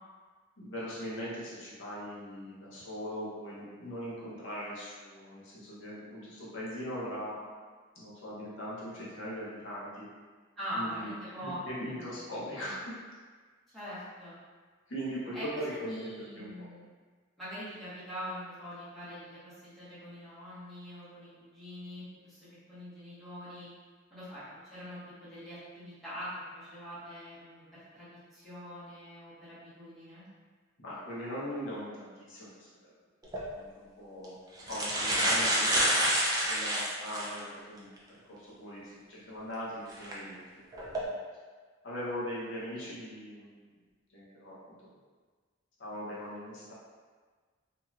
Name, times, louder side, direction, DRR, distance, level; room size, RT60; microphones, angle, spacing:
voice 1, 0.6-7.5 7.9-10.1 10.7-13.0 14.9-16.7 30.8-32.9 33.5-34.3 34.7-37.9 38.3-41.2 41.8-43.7 44.1-44.8 45.8-46.7, equal, 70° left, -8 dB, 0.9 m, -40 dB
voice 2, 10.6-12.3 13.7-14.3 15.3-15.5 15.7-16.8 17.4-22.4 22.7-23.7 24.1-24.4 24.7-27.7 27.9-30.3, equal, ahead, -14 dB, 1.3 m, -43 dB
sound 1, 33.2-33.4 34.2-34.3 34.6-37.4 38.0-38.1 39.9-40.1 40.7-41.0, right 1 dB, 20° right, 0.4 m, -28 dB
2.9 x 2.7 x 2.4 m, 1.5 s
head